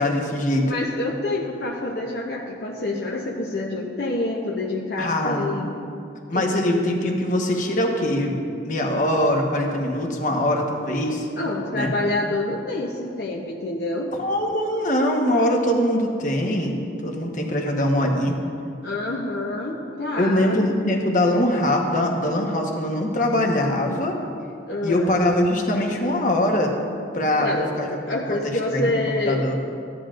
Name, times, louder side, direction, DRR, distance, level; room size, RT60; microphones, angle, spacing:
voice 1, 0.0-0.7 5.0-5.7 6.3-8.4 8.6-11.3 11.7-11.9 14.2-16.8 17.0-18.4 20.2-24.2 24.8-26.7 27.1-28.0 28.3-29.6, left 1 dB, 45° left, 1 dB, 1.1 m, -22 dB
voice 2, 0.6-5.7 6.3-6.6 11.4-14.1 18.8-20.7 24.7-25.1 27.4-27.7 28.0-29.5, left 2 dB, 60° left, -2 dB, 0.7 m, -27 dB
15.0 x 10.5 x 2.5 m, 2.5 s
head